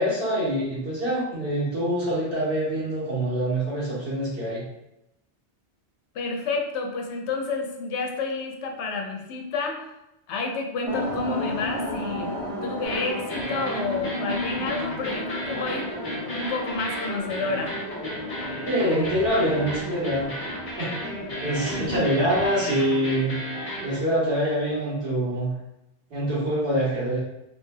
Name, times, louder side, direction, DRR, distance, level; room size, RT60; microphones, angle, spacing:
voice 1, 0.0-4.6 18.7-20.3 20.8-23.4 23.8-25.5 26.1-27.2, equal, 65° right, -7 dB, 1.5 m, -25 dB
voice 2, 6.1-9.9 10.3-15.9 16.3-17.7 21.8-22.0, left 3 dB, 80° left, 3 dB, 0.9 m, -30 dB
sound 1, 10.8-22.5, left 1 dB, 10° left, 1.0 m, -34 dB
sound 2, 12.8-24.0, equal, 35° left, 0.7 m, -34 dB
3.1 x 2.8 x 2.2 m, 0.87 s
omnidirectional pair, 1.1 m